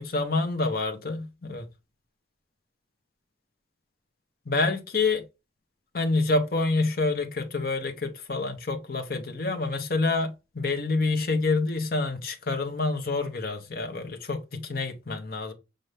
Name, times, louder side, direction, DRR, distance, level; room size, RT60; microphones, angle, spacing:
voice 1, 0.0-1.6 4.5-5.2 5.9-15.5, left 3 dB, 55° left, 0.7 m, -27 dB
5.4 x 2.6 x 3.2 m
head